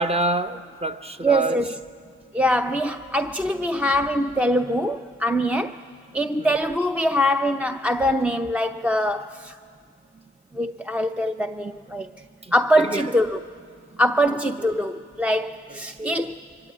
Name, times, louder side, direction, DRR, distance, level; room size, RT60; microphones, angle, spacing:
voice 1, 0.0-1.6 6.4-6.5 12.4-13.1 15.7-16.2, right 2 dB, 20° right, 1.0 m, -27 dB
voice 2, 1.2-1.8 2.3-5.8 6.1-9.6 10.5-12.1 12.5-13.4 14.0-16.3, equal, 5° right, 0.5 m, -23 dB
24.0 x 20.5 x 8.6 m
cardioid pair, 90°, 30 cm